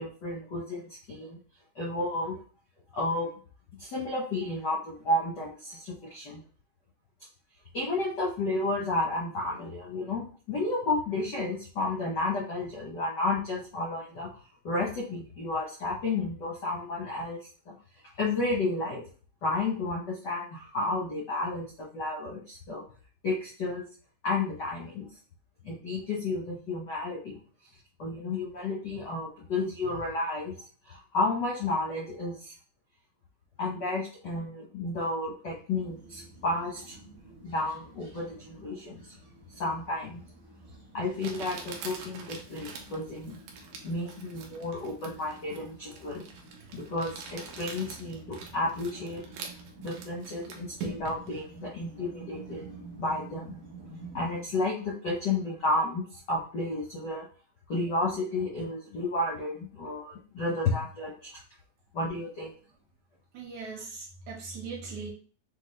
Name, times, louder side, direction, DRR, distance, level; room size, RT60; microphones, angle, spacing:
voice 1, 0.0-1.4 1.7-2.4 2.9-3.3 3.8-6.4 7.7-14.3 14.6-17.4 17.6-17.7 18.2-19.0 19.4-22.8 23.2-23.8 24.2-25.1 25.6-27.4 28.0-30.5 30.9-32.5 33.6-37.0 37.4-39.0 39.5-40.2 40.9-43.4 43.8-46.2 46.7-49.2 49.8-52.6 53.0-53.6 54.1-57.3 57.7-61.4 61.9-62.5, left 2 dB, 70° left, -4 dB, 1.0 m, -32 dB
sound 1, 35.7-54.4, right 3 dB, 45° right, 0.9 m, -49 dB
Crumpling crinkling, 40.3-40.4 41.2-51.3, right 4 dB, 90° right, 2.3 m, -44 dB
voice 2, 63.3-65.1, right 4 dB, 75° right, -3 dB, 2.5 m, -39 dB
6.8 x 2.3 x 3.2 m, 0.41 s
omnidirectional pair, 3.4 m